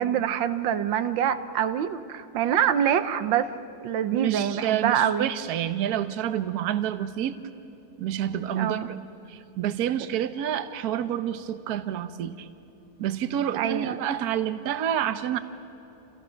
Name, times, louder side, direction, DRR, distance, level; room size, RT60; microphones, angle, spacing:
voice 1, 0.0-3.5 3.8-5.3 8.5-8.9 13.5-14.0, right 9 dB, 85° right, 11 dB, 1.6 m, -25 dB
voice 2, 4.1-7.4 8.0-9.0 9.3-12.5 13.0-15.4, right 10 dB, 60° right, 11 dB, 1.3 m, -28 dB
28.5 x 28.5 x 5.8 m, 2.8 s
omnidirectional pair, 2.0 m